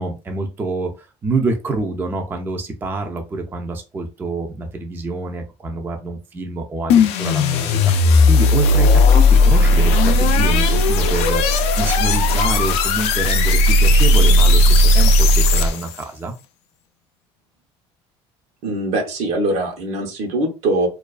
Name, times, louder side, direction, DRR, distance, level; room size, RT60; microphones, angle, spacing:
voice 1, 0.0-16.3, right 3 dB, 20° right, 0.4 m, -27 dB
sound 1, 6.9-16.0, left 2 dB, 70° left, 0.4 m, -15 dB
voice 2, 18.6-20.9, right 1 dB, 75° right, 0.8 m, -22 dB
2.3 x 2.3 x 2.3 m
cardioid pair, 130°, 11 cm